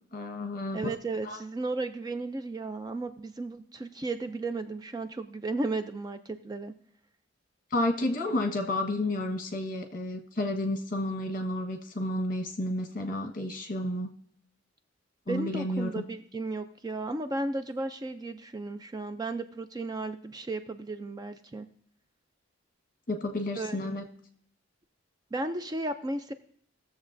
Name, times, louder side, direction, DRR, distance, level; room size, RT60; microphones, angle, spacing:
voice 1, 0.1-0.9 1.2-1.4 7.7-14.1 15.3-16.0 23.1-24.0, left 1 dB, 45° left, 6 dB, 1.3 m, -31 dB
voice 2, 0.7-6.7 15.3-21.7 23.6-23.8 25.3-26.3, right 2 dB, 20° right, 9 dB, 0.4 m, -34 dB
17.5 x 7.0 x 2.6 m, 0.63 s
head